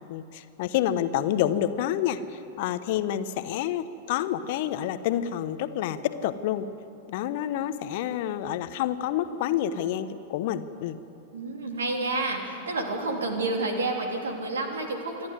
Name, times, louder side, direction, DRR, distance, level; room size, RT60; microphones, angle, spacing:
voice 1, 0.1-6.7 7.1-11.0, left 11 dB, 55° left, 12 dB, 1.0 m, -28 dB
voice 2, 11.3-15.3, right 2 dB, 75° right, 2 dB, 3.2 m, -29 dB
27.0 x 11.5 x 9.6 m, 2.8 s
figure-of-eight pair, 95°, 0 cm